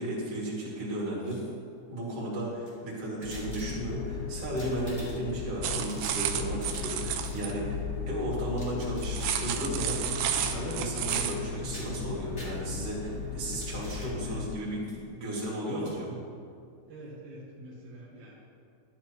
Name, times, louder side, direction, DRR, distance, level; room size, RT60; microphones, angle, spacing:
voice 1, 0.0-1.4 1.9-16.2, right 1 dB, 40° right, -6 dB, 2.7 m, -34 dB
sound 1, 1.0-1.7 2.5-4.1 4.4-5.4 5.7-7.0 7.2-7.5 8.3-9.6 10.3-10.8 11.1-11.4 11.7-12.9 13.4-14.1 14.8-15.0 15.3-15.5 15.8-15.9, equal, 20° left, 2.0 m, -50 dB
sound 2, 3.2-14.5, left 5 dB, 75° left, 2.3 m, -36 dB
sound 3, 5.6-7.5 9.0-11.4, right 10 dB, 90° right, 2.2 m, -31 dB
voice 2, 16.9-18.4, right 1 dB, 70° right, -6 dB, 1.9 m, -46 dB
12.0 x 11.0 x 3.0 m, 2.3 s
omnidirectional pair, 5.2 m